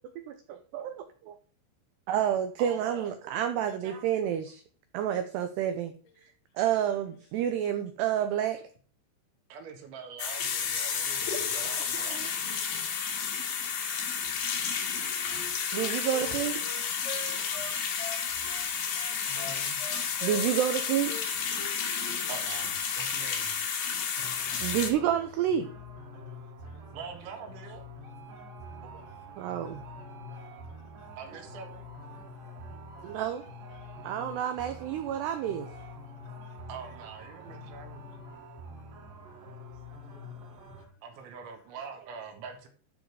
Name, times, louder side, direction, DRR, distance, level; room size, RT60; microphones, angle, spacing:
voice 1, 0.3-1.3 2.1-4.6 4.9-5.9 6.6-8.6 11.9-12.3 15.7-16.6 20.2-21.1 24.6-25.7 29.4-29.8 33.0-33.4 34.0-35.7, right 10 dB, 85° right, 8 dB, 2.3 m, -29 dB
voice 2, 2.6-3.1 3.7-4.1 9.5-12.2 19.3-19.8 22.3-23.6 26.9-27.9 31.2-31.9 36.7-38.0 41.0-42.7, right 5 dB, 70° right, 4 dB, 3.9 m, -44 dB
sound 1, 10.2-24.9, left 6 dB, 55° left, 2.5 m, -31 dB
voice 3, 14.2-15.7 18.8-19.6 20.1-20.2 26.6-26.7 29.0-29.2 31.0-31.1 33.0-33.2 36.4-36.5 40.1-40.3, left 6 dB, 80° left, 6 dB, 4.2 m, -65 dB
Wind instrument woodwind instrument, 15.2-18.7 18.9-22.2, left 3 dB, 30° left, 1.3 m, -43 dB
sound 2, 24.2-40.9, left 1 dB, 50° right, 3.1 m, -46 dB
12.5 x 6.4 x 4.8 m, 0.42 s
omnidirectional pair, 5.9 m